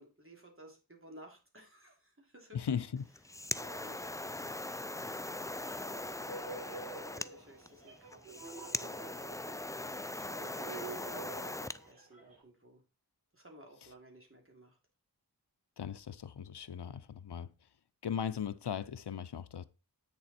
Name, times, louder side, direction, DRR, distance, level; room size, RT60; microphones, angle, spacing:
voice 1, 0.0-2.6 3.5-5.6 6.6-10.6 10.9-11.3 11.9-12.8 13.3-14.8, right 1 dB, 30° right, 3.0 m, -57 dB
voice 2, 2.5-3.1 15.8-17.5 18.0-19.6, left 8 dB, 80° left, 0.6 m, -38 dB
sound 1, 3.0-11.8, left 2 dB, 10° left, 0.3 m, -40 dB
sound 2, 5.6-12.4, right 3 dB, 60° right, 5.5 m, -48 dB
8.7 x 6.9 x 4.3 m
wide cardioid pair, 40°, 40 cm